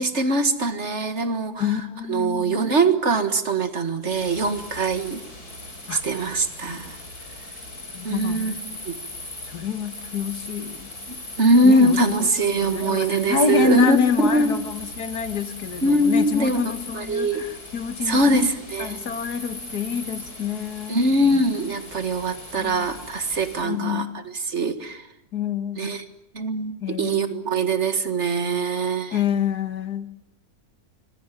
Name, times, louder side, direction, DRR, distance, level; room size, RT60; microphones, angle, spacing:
voice 1, 0.0-1.8 2.1-5.2 5.9-7.0 8.0-8.5 8.9-9.0 11.4-14.6 15.8-16.6 16.9-17.5 18.0-19.0 20.9-25.0 25.8-26.0 26.3-29.2, right 2 dB, 45° right, 10 dB, 2.0 m, -22 dB
voice 2, 1.6-2.7 5.9-6.0 6.7-6.8 7.9-8.6 9.5-10.9 11.6-12.3 12.7-18.4 18.8-21.1 22.6-22.9 23.6-24.1 25.3-25.9 26.8-27.4 29.1-30.1, left 6 dB, 85° left, 11 dB, 2.1 m, -27 dB
sound 1, 4.1-23.6, left 1 dB, 70° left, 6.9 m, -39 dB
25.5 x 21.0 x 9.3 m, 0.81 s
omnidirectional pair, 1.6 m